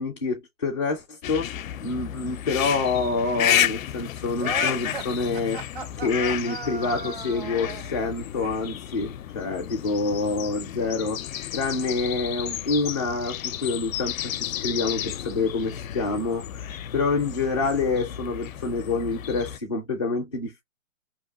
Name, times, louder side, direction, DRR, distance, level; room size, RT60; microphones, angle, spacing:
voice 1, 0.0-1.5 1.8-5.6 6.0-11.2 11.5-16.6 16.9-20.6, left 3 dB, 25° left, 0.4 m, -27 dB
sound 1, 1.2-19.6, left 11 dB, 70° left, 0.5 m, -32 dB
sound 2, 4.4-7.9, right 5 dB, 40° right, 0.6 m, -36 dB
2.9 x 2.1 x 3.9 m
hypercardioid pair, 160°, 42 cm